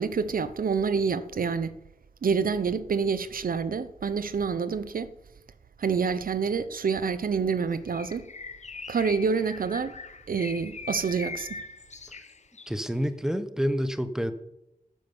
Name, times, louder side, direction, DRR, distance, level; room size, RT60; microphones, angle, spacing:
voice 1, 0.0-1.8 2.2-5.1 5.8-8.2 8.9-9.9 10.3-11.6, right 5 dB, 75° right, 0.7 m, -27 dB
Bird, 7.9-12.8, left 4 dB, 50° left, 0.8 m, -41 dB
voice 2, 12.7-14.3, equal, 5° right, 1.0 m, -28 dB
10.5 x 9.3 x 7.1 m
wide cardioid pair, 85°, 15 cm